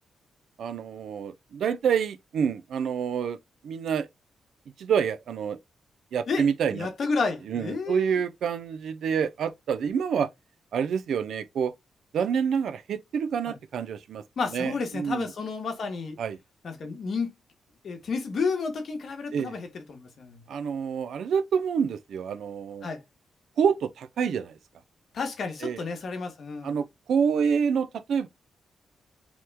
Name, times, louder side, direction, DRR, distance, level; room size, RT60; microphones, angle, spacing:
voice 1, 0.6-3.4 3.6-4.1 4.8-5.6 6.1-6.9 7.5-10.3 10.7-11.7 12.1-14.2 14.5-15.3 16.2-16.4 19.3-19.6 20.5-22.9 23.6-24.6 25.6-25.8 26.6-28.3, right 7 dB, 75° right, 0.4 m, -27 dB
voice 2, 6.7-8.2 13.5-13.6 14.4-16.2 16.6-17.3 17.8-20.4 22.8-23.0 25.1-26.7, left 4 dB, 55° left, 1.0 m, -31 dB
3.0 x 2.1 x 3.2 m
cardioid pair, 115°, 0 cm